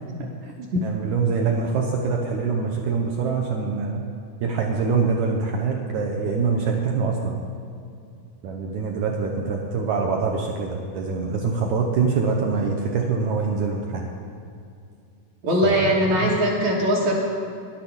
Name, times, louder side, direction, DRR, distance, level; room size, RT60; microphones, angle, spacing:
voice 1, 0.2-4.0 4.4-7.4 8.4-14.0 15.6-15.9, right 5 dB, 75° right, 1 dB, 1.7 m, -24 dB
voice 2, 15.4-17.1, equal, 55° right, -5 dB, 2.4 m, -20 dB
10.5 x 10.5 x 7.2 m, 2.5 s
omnidirectional pair, 4.4 m